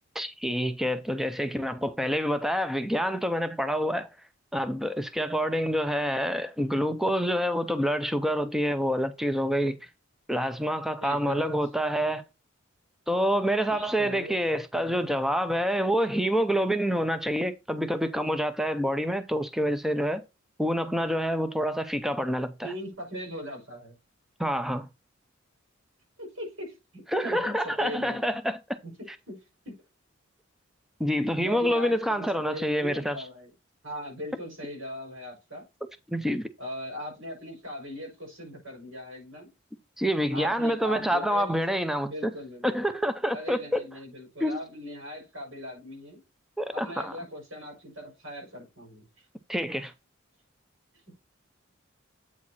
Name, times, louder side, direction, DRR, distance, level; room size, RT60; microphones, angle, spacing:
voice 1, 0.1-4.1 4.5-9.8 10.3-12.2 13.1-20.2 20.6-22.7 24.4-24.9 27.1-28.6 31.0-33.2 36.1-36.5 40.0-42.3 42.6-43.8 44.4-44.6 46.6-47.1 49.5-49.9, equal, ahead, 0.6 m, -27 dB
voice 2, 11.0-11.5 13.7-14.4 22.6-24.0 26.2-28.4 28.8-29.4 31.1-33.5 33.8-35.6 36.6-39.5 40.3-41.6 42.0-42.8 43.3-46.2 46.7-49.1, left 1 dB, 75° right, 5.7 m, -39 dB
8.4 x 4.6 x 4.1 m
head